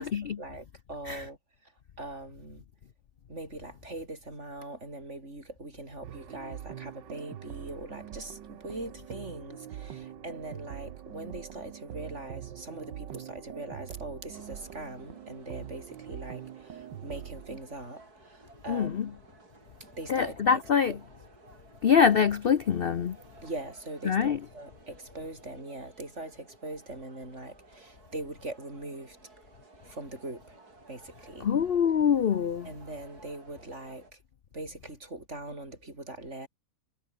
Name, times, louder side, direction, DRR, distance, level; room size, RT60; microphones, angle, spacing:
voice 1, 0.4-1.7 2.0-2.6 3.3-19.2 20.0-21.0 23.4-29.5 29.8-31.5 32.6-34.2 34.5-36.5, right 2 dB, 40° right, 8.2 m, -42 dB
sound 1, 6.0-17.6, right 10 dB, 90° right, 1.8 m, -44 dB
sound 2, 14.3-34.1, right 3 dB, 60° right, 5.5 m, -56 dB
voice 2, 18.7-19.1 20.1-20.9 21.8-23.2 24.1-24.4 31.4-32.7, left 7 dB, 80° left, 0.5 m, -24 dB
omnidirectional pair, 1.9 m